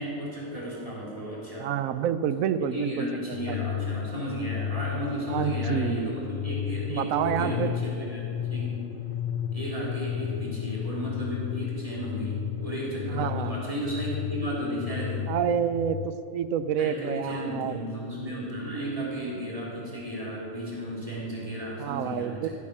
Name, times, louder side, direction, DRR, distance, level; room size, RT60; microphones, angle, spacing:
voice 1, 0.0-1.7 2.6-8.8 9.5-15.3 16.8-22.5, equal, 25° right, -6 dB, 3.6 m, -34 dB
voice 2, 1.6-3.1 3.5-3.6 5.3-6.2 6.9-7.7 13.1-13.5 15.3-17.8 21.8-22.5, right 9 dB, 80° right, 13 dB, 1.0 m, -28 dB
sound 1, 3.3-16.1, left 10 dB, 70° left, 0.5 m, -33 dB
15.0 x 8.5 x 6.1 m, 2.7 s
omnidirectional pair, 1.4 m